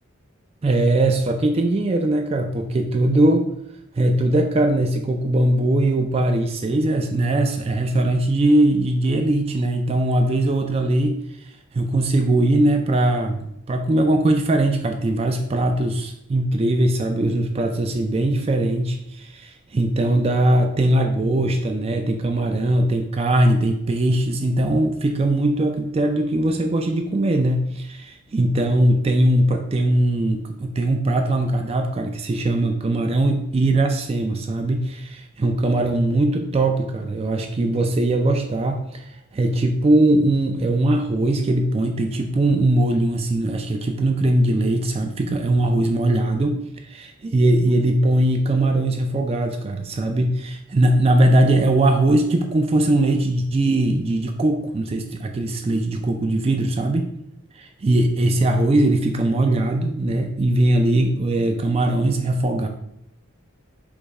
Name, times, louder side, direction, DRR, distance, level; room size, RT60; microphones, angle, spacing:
voice 1, 0.6-3.5 4.0-11.2 11.7-57.1 57.5-62.7, right 1 dB, 30° right, 5 dB, 0.3 m, -20 dB
5.2 x 2.2 x 4.6 m, 0.78 s
head